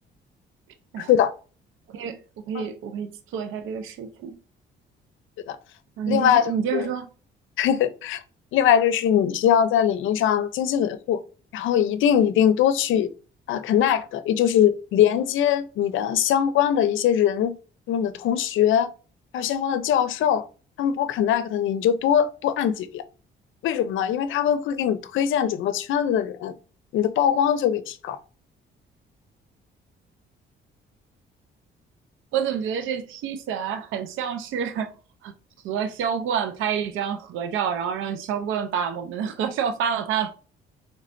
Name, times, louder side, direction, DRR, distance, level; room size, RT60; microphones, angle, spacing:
voice 1, 1.9-4.4 6.0-7.1 32.3-34.9 35.2-35.3 35.6-40.3, right 7 dB, 85° right, 0.5 m, -28 dB
voice 2, 6.1-6.8 7.6-8.2 8.5-11.2 11.5-13.1 13.5-17.5 17.9-18.9 19.3-20.5 20.8-23.0 23.6-26.5 26.9-28.2, left 9 dB, 80° left, 0.5 m, -22 dB
4.3 x 3.2 x 2.5 m
cardioid pair, 90°, 20 cm